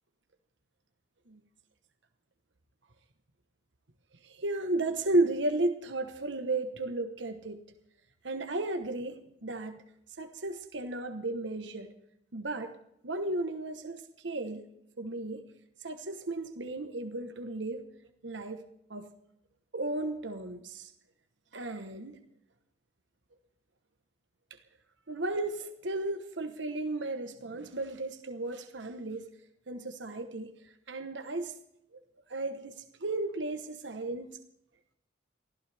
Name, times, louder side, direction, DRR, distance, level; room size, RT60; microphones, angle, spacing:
voice 1, 4.2-7.6 8.2-9.8 10.2-11.9 12.3-12.7 13.0-14.6 15.0-15.4 15.8-17.8 18.2-18.6 18.9-19.1 19.7-20.9 21.5-22.2 25.1-29.3 29.7-30.5 30.9-31.5 32.3-32.7 33.0-34.4, right 2 dB, 85° right, 7 dB, 1.2 m, -34 dB
24.0 x 15.0 x 3.5 m, 0.79 s
head